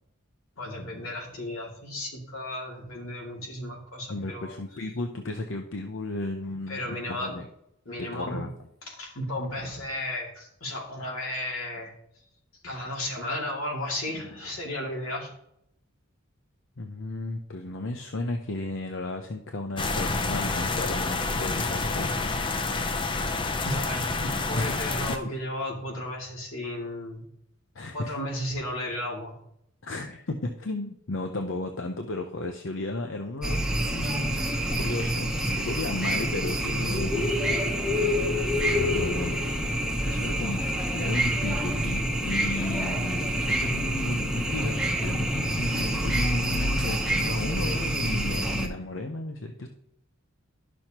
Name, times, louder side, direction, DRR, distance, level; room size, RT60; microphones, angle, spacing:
voice 1, 0.6-4.5 6.7-7.3 7.9-8.4 8.9-11.9 12.6-15.3 23.6-27.2 27.9-29.3, left 1 dB, 85° left, -2 dB, 2.5 m, -34 dB
voice 2, 4.1-7.5 8.0-8.5 16.8-22.3 24.5-24.8 25.1-25.2 27.7-28.1 29.8-34.4 34.7-37.6 38.0-38.2 38.8-39.5 40.0-40.6 40.9-49.7, left 2 dB, 60° left, 4 dB, 0.7 m, -34 dB
sound 1, 19.8-25.2, left 3 dB, 25° left, 0.5 m, -28 dB
sound 2, 33.4-48.7, equal, 5° right, 0.8 m, -27 dB
12.0 x 6.3 x 2.9 m, 0.77 s
head